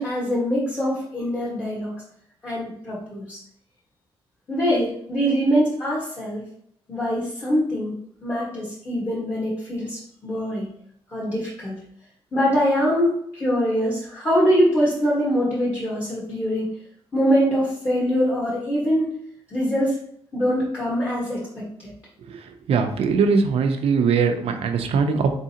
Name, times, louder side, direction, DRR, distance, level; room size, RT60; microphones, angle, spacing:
voice 1, 0.0-1.9 2.4-3.4 4.5-6.4 6.9-7.9 8.2-10.7 11.1-11.8 12.3-16.7 17.1-19.0 19.5-19.9 20.3-21.4, equal, 25° left, -7 dB, 1.4 m, -23 dB
voice 2, 22.3-25.3, right 5 dB, 70° right, 6 dB, 0.6 m, -21 dB
4.0 x 3.7 x 2.8 m, 0.68 s
cardioid pair, 105°, 10 cm